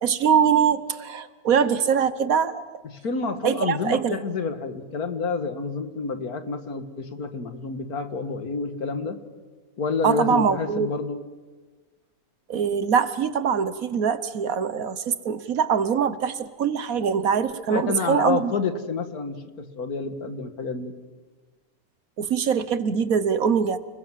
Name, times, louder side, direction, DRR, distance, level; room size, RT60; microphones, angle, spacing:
voice 1, 0.0-2.6 3.4-4.2 10.0-10.9 12.5-18.5 22.2-23.8, right 7 dB, 70° right, 13 dB, 1.6 m, -23 dB
voice 2, 2.8-9.2 9.8-11.2 17.7-21.0, left 4 dB, 85° left, 8 dB, 2.2 m, -29 dB
29.5 x 21.0 x 7.6 m, 1.3 s
omnidirectional pair, 1.5 m